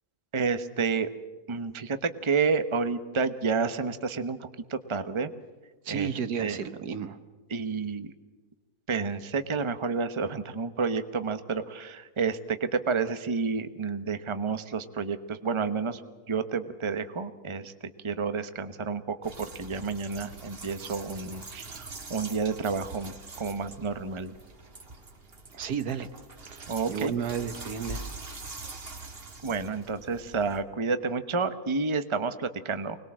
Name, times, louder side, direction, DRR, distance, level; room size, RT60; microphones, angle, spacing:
voice 1, 0.3-1.1 1.5-5.3 5.9-6.1 6.4-6.6 7.5-8.1 8.9-16.0 16.3-17.7 18.0-24.3 26.7-27.1 29.4-33.0, right 5 dB, 20° right, 10 dB, 1.0 m, -30 dB
voice 2, 5.8-7.2 25.5-26.1 26.4-28.0, right 7 dB, 80° right, 11 dB, 1.8 m, -32 dB
sound 1, 19.2-30.6, right 3 dB, 35° right, 2.1 m, -44 dB
25.0 x 20.5 x 7.4 m, 1.3 s
omnidirectional pair, 1.7 m